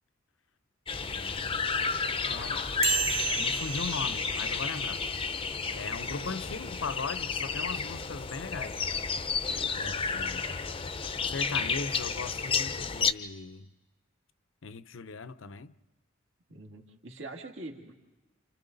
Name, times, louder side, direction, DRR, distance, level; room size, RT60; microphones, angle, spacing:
sound 1, 0.9-13.1, left 5 dB, 25° left, 0.7 m, -31 dB
voice 1, 1.0-1.7 2.3-2.7 3.2-5.0 5.7-8.9 9.8-10.5 11.2-13.7 14.6-15.8, left 4 dB, 70° left, 0.7 m, -39 dB
sound 2, 2.8-5.7, right 8 dB, 30° right, 0.7 m, -34 dB
voice 2, 6.0-6.5 9.5-10.3 16.5-17.9, right 2 dB, 65° right, 2.2 m, -46 dB
29.5 x 28.5 x 4.0 m
head